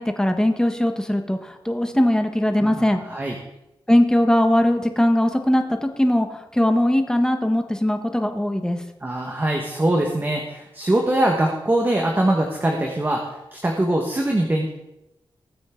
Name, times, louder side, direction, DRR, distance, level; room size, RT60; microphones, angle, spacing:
voice 1, 0.0-3.0 3.9-8.8, left 1 dB, 5° left, 6 dB, 1.4 m, -20 dB
voice 2, 2.6-3.3 9.0-14.7, right 1 dB, 20° right, 1 dB, 1.6 m, -22 dB
19.5 x 7.8 x 3.9 m, 0.91 s
wide cardioid pair, 95°, 9 cm